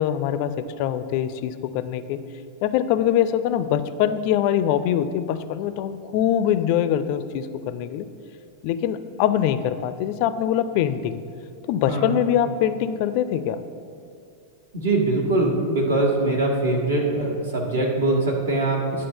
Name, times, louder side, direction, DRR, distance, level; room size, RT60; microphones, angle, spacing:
voice 1, 0.0-2.2 2.6-8.1 8.6-11.2 11.7-13.6, left 10 dB, 45° left, 12 dB, 0.4 m, -23 dB
voice 2, 14.7-18.8, right 2 dB, 70° right, -1 dB, 1.5 m, -22 dB
10.0 x 3.7 x 6.5 m, 2.5 s
figure-of-eight pair, 90°, 0 cm